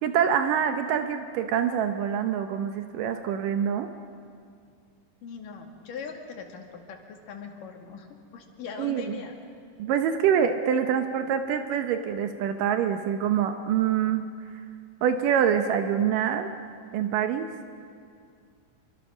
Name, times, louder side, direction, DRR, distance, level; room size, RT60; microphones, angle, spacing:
voice 1, 0.0-3.9 8.8-9.0 9.8-14.3 15.0-16.5 16.9-17.5, right 8 dB, 80° right, 7 dB, 2.5 m, -25 dB
voice 2, 5.2-8.1 8.3-9.3, left 5 dB, 75° left, 3 dB, 3.7 m, -40 dB
26.5 x 24.5 x 6.2 m, 2.3 s
omnidirectional pair, 3.8 m